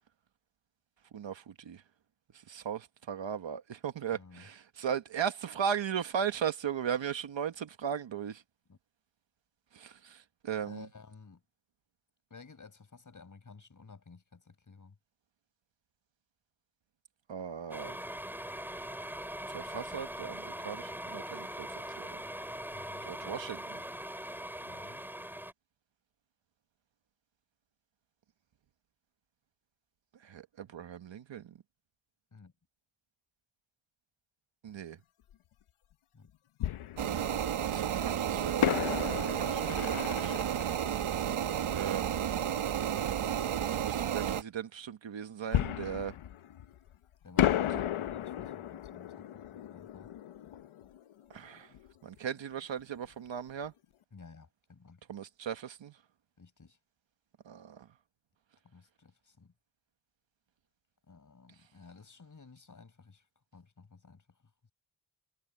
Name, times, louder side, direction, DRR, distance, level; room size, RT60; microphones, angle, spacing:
voice 1, 1.1-1.8 2.5-8.4 9.7-10.9 17.3-18.0 19.5-21.7 22.0-22.2 23.0-23.8 30.2-31.6 34.6-35.0 37.6-40.5 41.7-42.2 43.6-46.1 47.7-47.8 51.3-51.7 52.0-53.7 55.1-56.0 57.4-57.9, right 8 dB, 65° right, 1.6 m, -37 dB
voice 2, 4.1-4.5 8.7-8.8 10.7-11.4 12.3-15.0 22.7-23.4 24.6-25.0 32.3-32.5 36.1-36.3 47.2-50.1 54.1-55.0 56.4-56.8 58.6-59.5 61.1-63.3 63.5-64.4, left 4 dB, 40° left, 5.9 m, -54 dB
sound 1, 17.7-25.5, right 1 dB, 5° right, 5.9 m, -41 dB
Fireworks, 35.3-35.4 36.6-37.7 38.6-42.1 45.5-47.0 47.4-51.9 52.2-52.3 52.8-53.0, left 11 dB, 80° left, 0.9 m, -34 dB
sound 2, 37.0-44.4, right 9 dB, 90° right, 1.8 m, -32 dB
wide cardioid pair, 110°, 48 cm